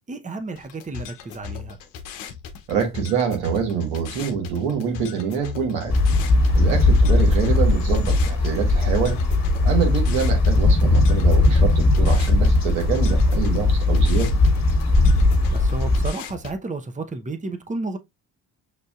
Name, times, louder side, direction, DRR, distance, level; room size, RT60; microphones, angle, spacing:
voice 1, 0.0-1.8 6.5-6.7 14.9-18.0, right 3 dB, 15° right, 0.8 m, -32 dB
sound 1, 0.6-16.6, left 8 dB, 90° left, 0.8 m, -38 dB
voice 2, 2.7-6.0 6.5-9.2 9.6-14.3, right 7 dB, 90° right, 1.4 m, -25 dB
sound 2, 5.9-16.1, left 2 dB, 35° left, 1.4 m, -18 dB
6.6 x 2.6 x 2.3 m
supercardioid pair, 60°, 44 cm